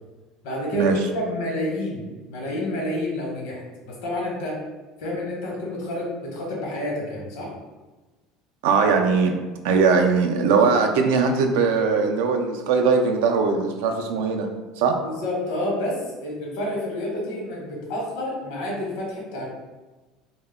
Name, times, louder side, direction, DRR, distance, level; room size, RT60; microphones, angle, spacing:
voice 1, 0.4-3.6 3.8-4.6 5.0-7.5 15.0-19.4, left 1 dB, 80° left, -2 dB, 0.9 m, -29 dB
voice 2, 8.6-9.4 9.6-14.5 14.8-15.0, right 5 dB, 85° right, 4 dB, 0.3 m, -20 dB
2.1 x 2.1 x 3.4 m, 1.2 s
cardioid pair, 170°, 0 cm